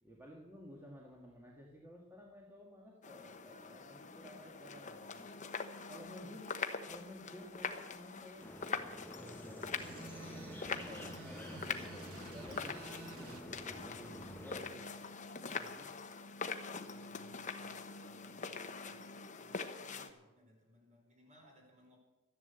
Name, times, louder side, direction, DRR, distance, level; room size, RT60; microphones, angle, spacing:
voice 1, 0.0-5.4 5.9-6.6 6.9-8.5 9.1-12.8 13.1-14.9 15.4-15.9, left 1 dB, 10° right, -2 dB, 1.9 m, -54 dB
sound 1, 3.0-20.1, left 5 dB, 35° left, 1.0 m, -44 dB
sound 2, 8.4-14.6, left 1 dB, 10° left, 1.2 m, -49 dB
sound 3, 9.8-13.4, right 4 dB, 75° right, 1.2 m, -51 dB
voice 2, 16.8-19.0 19.3-22.0, equal, 35° right, 0 dB, 4.6 m, -65 dB
13.5 x 10.5 x 8.0 m, 1.0 s
head